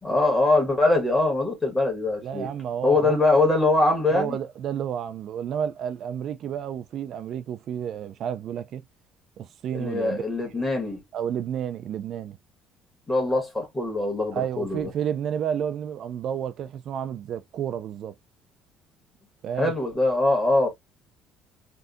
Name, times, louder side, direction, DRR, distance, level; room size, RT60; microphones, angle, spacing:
voice 1, 0.0-2.5 2.8-4.4 9.7-11.0 13.1-14.9 19.6-20.7, left 2 dB, 15° left, 1.5 m, -22 dB
voice 2, 2.2-3.2 4.1-8.8 9.4-10.2 10.5-10.6 11.1-12.4 14.3-18.1 19.4-19.7, right 9 dB, 55° right, 0.3 m, -31 dB
3.5 x 2.6 x 2.5 m
cardioid pair, 135°, 0 cm